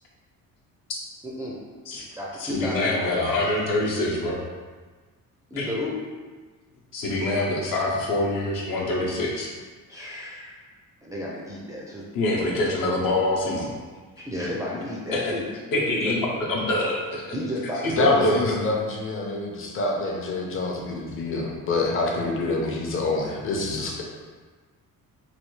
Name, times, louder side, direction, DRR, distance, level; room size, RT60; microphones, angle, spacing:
voice 1, 1.2-1.6 2.1-3.2 5.5-6.2 9.9-10.6 11.0-12.1 14.2-15.5 15.9-16.2 17.3-18.3, left 1 dB, 10° right, -6 dB, 0.4 m, -32 dB
voice 2, 2.4-4.4 5.6-5.7 6.9-9.5 12.1-13.7 15.1-15.3 15.7-17.3 17.8-18.5, left 1 dB, 70° left, -4 dB, 0.9 m, -25 dB
voice 3, 17.9-24.0, left 3 dB, 40° left, -1 dB, 0.6 m, -26 dB
3.3 x 2.3 x 3.1 m, 1.4 s
cardioid pair, 125°, 35 cm